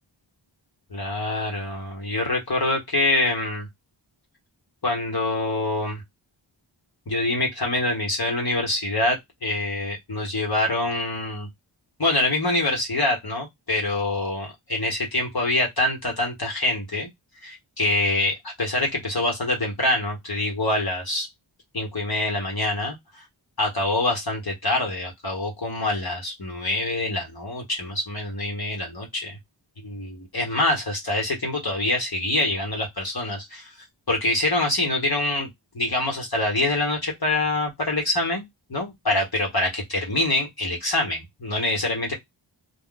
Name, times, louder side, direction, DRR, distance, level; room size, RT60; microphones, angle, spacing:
voice 1, 0.9-3.7 4.8-6.0 7.1-11.5 12.0-17.1 17.4-21.3 21.7-23.2 23.6-29.4 29.8-33.7 34.1-35.5 35.7-38.4 38.7-42.1, left 2 dB, 50° left, 1.2 m, -25 dB
2.4 x 2.2 x 3.8 m
wide cardioid pair, 60°, 47 cm